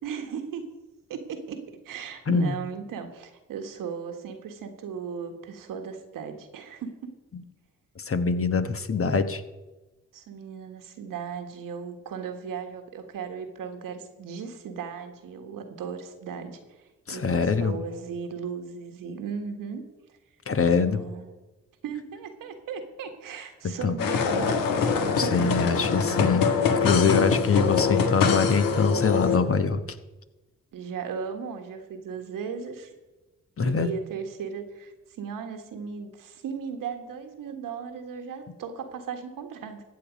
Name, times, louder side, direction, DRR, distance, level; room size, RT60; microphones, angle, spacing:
voice 1, 0.0-0.7 1.1-7.1 10.1-19.8 20.9-21.3 21.8-25.5 30.7-32.9 33.6-39.8, right 6 dB, 80° right, 6 dB, 1.6 m, -37 dB
voice 2, 8.0-9.4 17.1-17.8 20.5-21.0 23.8-23.9 25.2-29.8 33.6-33.9, left 5 dB, 40° left, 10 dB, 1.2 m, -24 dB
sound 1, 24.0-29.4, left 5 dB, 85° left, 1.3 m, -24 dB
14.5 x 8.5 x 5.2 m, 1.1 s
supercardioid pair, 45°, 33 cm